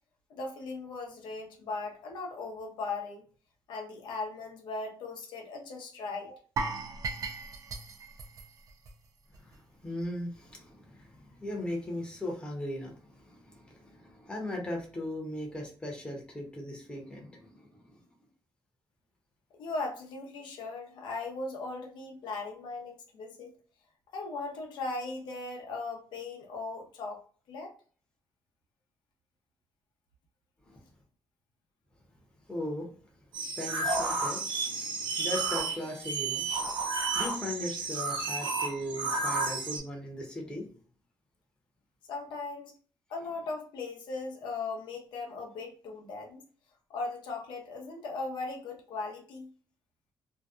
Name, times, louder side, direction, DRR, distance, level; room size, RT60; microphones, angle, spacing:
voice 1, 0.3-3.2 3.7-6.4 19.6-23.5 24.1-27.2 27.5-27.7 42.1-42.7 43.1-46.4 46.9-49.5, left 3 dB, 90° left, 0.6 m, -38 dB
sound 1, 6.6-9.6 9.8-10.0 10.5-10.6, right 4 dB, 50° right, 0.4 m, -37 dB
voice 2, 9.4-18.0 30.6-30.8 32.5-32.9 33.6-36.5 37.1-40.7, left 1 dB, 10° left, 0.7 m, -38 dB
sound 2, 33.3-39.8, right 3 dB, 90° right, 0.9 m, -32 dB
2.6 x 2.2 x 2.3 m
cardioid pair, 145°, 8 cm